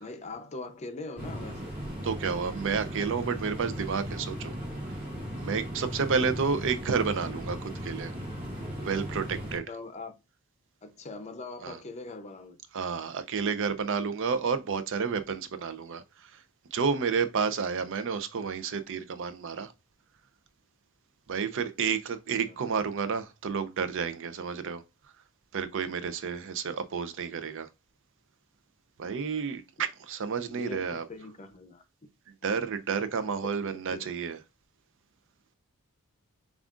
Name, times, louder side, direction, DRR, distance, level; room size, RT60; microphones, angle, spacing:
voice 1, 0.0-1.8 9.7-10.1 10.8-12.6 22.5-22.7 30.5-31.8 33.6-34.1, left 3 dB, 30° left, 0.6 m, -42 dB
sound 1, 1.2-9.6, equal, 35° right, 2.2 m, -37 dB
voice 2, 2.0-4.5 5.4-8.1 8.8-9.6 11.6-11.8 12.7-16.0 16.7-19.7 21.3-24.8 25.5-27.7 29.0-31.0 32.4-34.4, right 5 dB, 60° right, 0.5 m, -30 dB
7.2 x 2.4 x 2.4 m
head